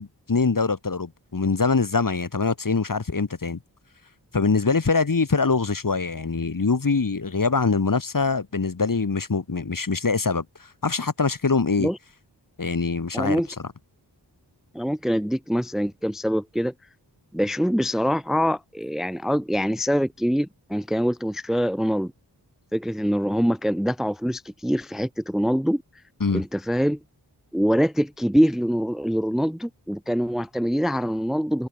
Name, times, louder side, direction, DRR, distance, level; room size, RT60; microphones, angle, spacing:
voice 1, 0.0-3.6 4.3-11.9 12.6-13.4 26.2-26.4, left 4 dB, 50° left, 3.4 m, -23 dB
voice 2, 13.1-13.5 14.7-16.7 17.3-22.1 22.7-25.8 26.3-27.0 27.5-31.7, equal, ahead, 0.7 m, -24 dB
wide cardioid pair, 80°, 41 cm